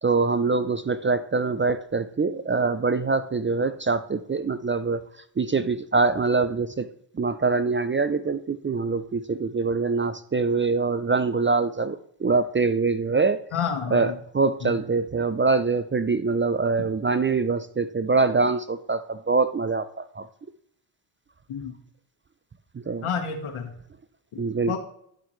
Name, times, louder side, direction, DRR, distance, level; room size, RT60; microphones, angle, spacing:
voice 1, 0.0-5.0 5.4-6.9 7.2-13.4 13.9-20.3 22.9-23.1 24.4-24.8, right 4 dB, 25° right, 13 dB, 0.5 m, -24 dB
voice 2, 13.5-14.1 14.6-14.8 21.5-21.7 23.0-23.7 24.7-24.8, left 7 dB, 80° left, 2 dB, 1.4 m, -29 dB
10.5 x 7.1 x 3.1 m, 0.68 s
cardioid pair, 80°, 50 cm